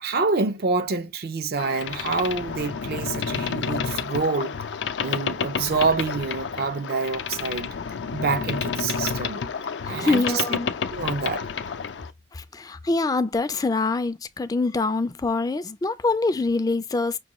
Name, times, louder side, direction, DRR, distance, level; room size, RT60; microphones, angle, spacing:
voice 1, 0.0-4.6 5.0-7.7 8.1-9.4 9.9-10.4 10.9-11.5, right 4 dB, 55° right, 0.5 m, -26 dB
Boat Water vehicle, 1.6-12.1, left 6 dB, 80° left, 0.5 m, -30 dB
voice 2, 10.0-10.7 12.4-17.2, left 3 dB, 20° left, 0.3 m, -24 dB
6.1 x 2.3 x 2.9 m
head